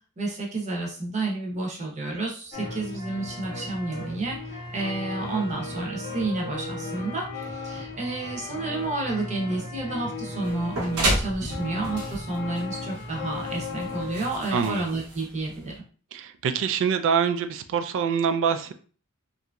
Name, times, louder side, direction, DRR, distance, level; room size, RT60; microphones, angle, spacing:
voice 1, 0.2-15.7, right 2 dB, 30° right, -1 dB, 0.7 m, -30 dB
sound 1, 2.5-14.3, left 2 dB, 40° left, 0.6 m, -36 dB
sound 2, 10.4-15.8, right 1 dB, 75° right, 0.7 m, -32 dB
voice 2, 14.5-14.8 16.1-18.7, right 7 dB, 60° right, 10 dB, 0.3 m, -25 dB
2.8 x 2.5 x 2.2 m, 0.41 s
head